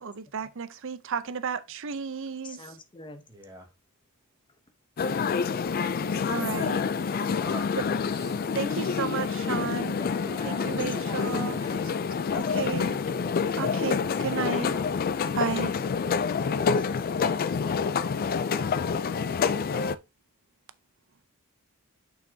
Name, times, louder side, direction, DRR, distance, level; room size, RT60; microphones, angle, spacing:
voice 1, 0.0-2.6 6.3-6.9 7.8-7.9 8.5-10.0 10.4-11.6 12.3-13.0 13.6-14.7 15.3-15.7, right 6 dB, 60° right, 0.6 m, -33 dB
voice 2, 2.4-3.3 4.5-4.6 10.0-11.9 16.7-17.3, left 3 dB, 20° left, 0.8 m, -43 dB
voice 3, 3.3-3.7 6.3-6.7 7.3-8.4 10.2-11.1 11.5-12.0 13.6-13.9 14.6-14.8, right 1 dB, 15° right, 1.8 m, -45 dB
sound 1, 5.0-20.0, left 5 dB, 40° left, 0.3 m, -27 dB
6.4 x 5.9 x 2.7 m
head